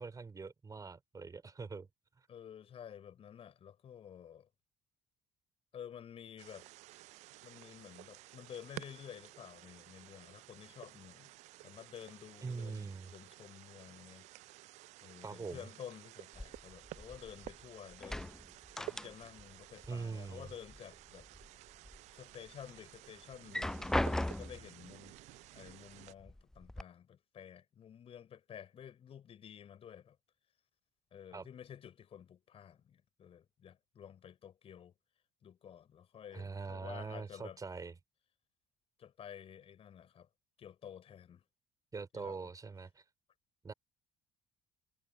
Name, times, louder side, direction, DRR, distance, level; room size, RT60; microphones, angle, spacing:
voice 1, 0.0-1.9 12.4-13.1 15.2-15.7 19.9-20.5 31.3-31.5 36.3-37.9 41.9-43.0 43.6-43.7, right 4 dB, 25° right, 3.2 m, -43 dB
voice 2, 2.3-4.5 5.7-6.7 7.4-11.3 11.6-14.5 15.0-21.3 22.1-30.2 31.1-34.9 35.4-37.6 39.0-40.3 40.6-41.4 42.1-42.5, left 9 dB, 45° left, 6.1 m, -52 dB
sound 1, 6.4-26.1, right 18 dB, 60° right, 0.7 m, -53 dB
sound 2, 16.3-17.6 17.9-19.5 19.8-20.8 21.2-22.0 22.5-22.6 23.3-24.7 25.7-25.8 26.2-26.8, left 1 dB, 5° left, 0.3 m, -38 dB
figure-of-eight pair, 55°, 14 cm